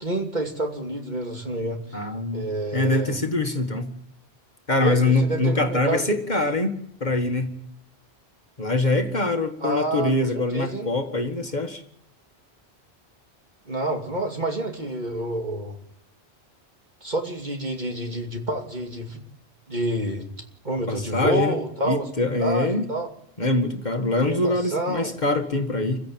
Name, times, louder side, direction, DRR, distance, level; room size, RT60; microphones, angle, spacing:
voice 1, 0.0-2.0 2.3-3.2 4.8-6.0 9.6-10.9 13.7-15.8 17.0-19.2 19.7-20.3 20.6-22.1 22.4-23.1 24.1-25.1, right 1 dB, 45° right, 2 dB, 2.8 m, -28 dB
voice 2, 1.9-2.5 2.7-3.9 4.7-7.5 8.6-11.8 20.9-21.6 21.8-22.8 23.4-26.0, left 2 dB, 45° left, 5 dB, 2.0 m, -24 dB
28.0 x 16.0 x 7.6 m, 0.76 s
omnidirectional pair, 1.1 m